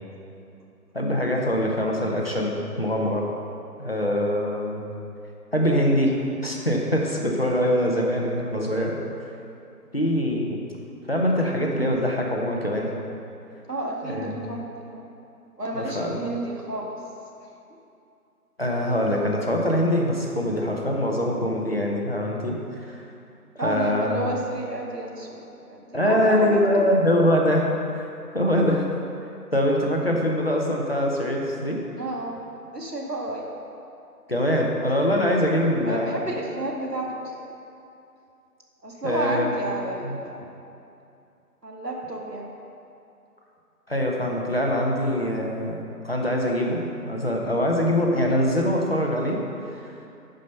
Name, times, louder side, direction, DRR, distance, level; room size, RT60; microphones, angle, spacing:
voice 1, 0.9-3.3 3.8-4.8 5.5-6.1 6.4-8.9 9.9-10.6 11.1-12.9 14.1-14.4 15.7-16.1 18.6-23.0 23.5-24.1 25.9-28.9 29.5-31.8 34.3-36.1 39.0-39.5 40.0-40.2 43.9-49.4 49.7-49.9, equal, 40° left, -1 dB, 1.1 m, -23 dB
voice 2, 13.7-15.1 15.6-17.0 17.4-17.5 23.6-26.9 32.0-32.4 32.7-33.5 35.1-35.3 35.8-37.3 38.8-40.5 41.6-42.5, right 1 dB, 85° right, -1 dB, 1.8 m, -31 dB
9.8 x 5.2 x 5.6 m, 2.7 s
figure-of-eight pair, 175°, 47 cm